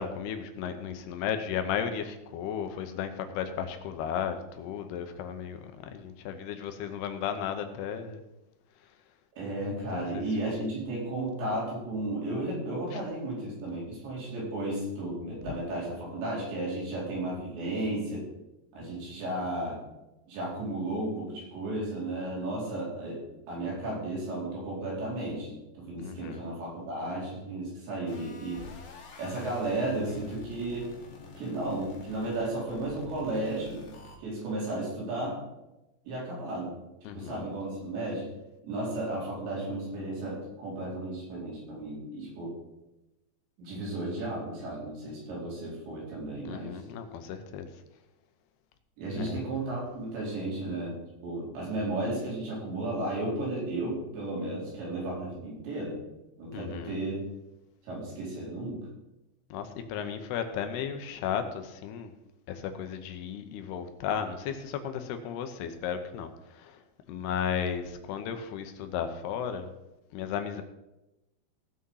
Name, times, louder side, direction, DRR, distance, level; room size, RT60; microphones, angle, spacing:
voice 1, 0.0-8.2 9.9-10.6 12.9-13.0 15.5-15.6 26.0-26.4 37.0-37.5 46.5-47.7 49.2-49.5 56.5-57.0 59.5-62.1 62.5-66.8 67.1-69.7 70.1-70.6, left 8 dB, 75° left, 7 dB, 2.7 m, -34 dB
voice 2, 9.4-18.2 18.7-19.8 20.3-23.2 23.5-28.7 29.2-30.9 31.4-33.8 34.2-35.4 36.1-36.8 37.1-38.2 38.6-42.6 43.6-46.8 49.0-56.0 56.4-57.2 57.8-58.8, right 2 dB, 80° right, -4 dB, 6.5 m, -34 dB
sound 1, 28.1-34.2, left 3 dB, 55° left, 3.1 m, -48 dB
17.0 x 6.2 x 5.6 m, 0.96 s
omnidirectional pair, 5.1 m